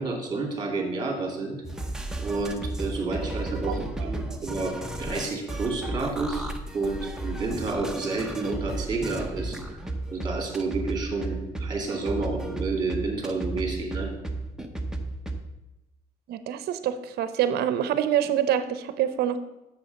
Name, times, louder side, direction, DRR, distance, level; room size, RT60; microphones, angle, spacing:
voice 1, 0.0-1.6 2.2-6.5 6.7-9.8 10.1-14.1, right 3 dB, 25° right, 1 dB, 2.4 m, -30 dB
sound 1, 1.6-15.4, right 2 dB, 5° right, 0.8 m, -33 dB
voice 2, 3.7-4.1 16.3-19.4, right 10 dB, 70° right, 12 dB, 0.7 m, -26 dB
7.0 x 6.4 x 5.2 m, 0.97 s
cardioid pair, 110°, 17 cm